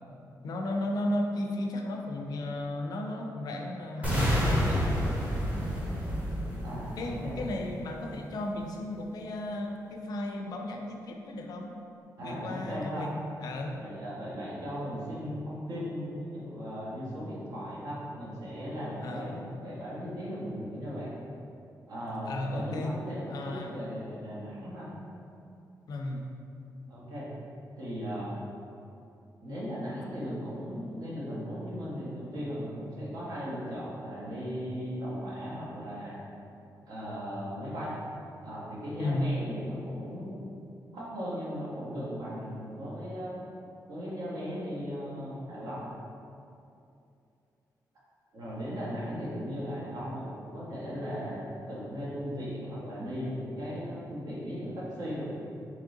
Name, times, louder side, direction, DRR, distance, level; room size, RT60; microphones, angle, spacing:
voice 1, 0.4-5.0 7.0-11.8 12.2-13.8 19.0-19.5 22.2-23.0 23.3-23.8 25.9-26.3 39.0-39.4, left 1 dB, 65° left, 2 dB, 0.4 m, -34 dB
sound 1, 4.0-8.1, equal, 20° right, 0.9 m, -29 dB
voice 2, 6.6-7.3 12.2-13.1 13.7-21.1 21.9-24.9 26.9-27.3 27.8-28.4 29.4-36.2 36.9-38.0 38.4-40.5 40.9-43.3 43.9-45.9 48.3-55.4, equal, 65° right, -7 dB, 1.1 m, -37 dB
3.6 x 3.0 x 3.8 m, 2.6 s
wide cardioid pair, 150°, 7 cm